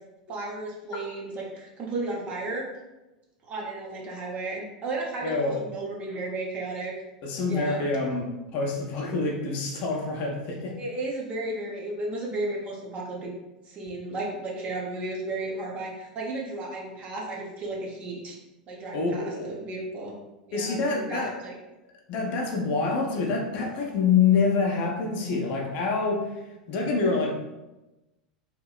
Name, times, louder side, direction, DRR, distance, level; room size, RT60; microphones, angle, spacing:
voice 1, 0.3-2.6 3.4-6.9 7.5-7.9 10.8-13.3 13.6-18.4 18.7-20.1 20.5-21.5, right 2 dB, 30° right, -2 dB, 0.8 m, -34 dB
voice 2, 5.2-5.6 7.2-10.8 18.9-19.6 20.5-21.3 22.1-27.3, left 4 dB, 45° left, 0 dB, 0.6 m, -26 dB
2.9 x 2.7 x 2.4 m, 1.0 s
figure-of-eight pair, 85°, 4 cm